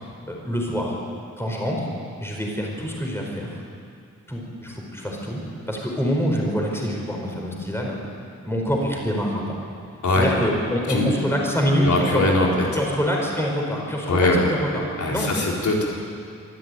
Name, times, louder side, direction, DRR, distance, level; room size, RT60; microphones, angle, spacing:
voice 1, 0.3-0.9 1.4-1.9 2.2-3.6 4.3-5.4 5.7-8.0 8.4-9.6 10.2-14.8 15.1-15.3, equal, 10° left, -1 dB, 4.9 m, -25 dB
voice 2, 11.8-12.7 14.0-14.4 15.0-15.9, left 2 dB, 80° left, -2 dB, 4.1 m, -21 dB
24.0 x 13.0 x 9.5 m, 2.3 s
wide cardioid pair, 125°, 29 cm